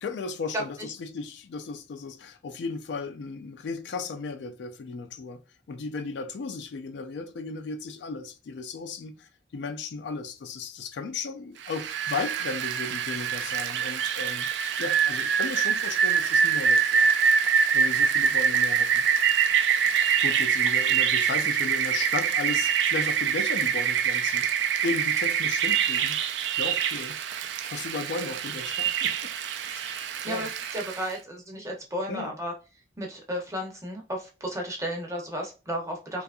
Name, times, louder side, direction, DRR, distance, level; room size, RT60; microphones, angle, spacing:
voice 1, 0.0-5.4 5.7-14.5 14.8-17.1 17.7-19.0 20.2-24.5 24.8-26.2 26.6-27.2 27.7-29.3 29.6-30.0 30.3-30.5 32.1-32.3, left 4 dB, 70° left, 0.3 m, -35 dB
voice 2, 0.5-0.9 30.2-32.5 33.0-36.2, equal, 15° right, 0.6 m, -33 dB
Rain, 11.6-31.1, right 7 dB, 70° right, 0.3 m, -25 dB
2.7 x 2.3 x 2.3 m
head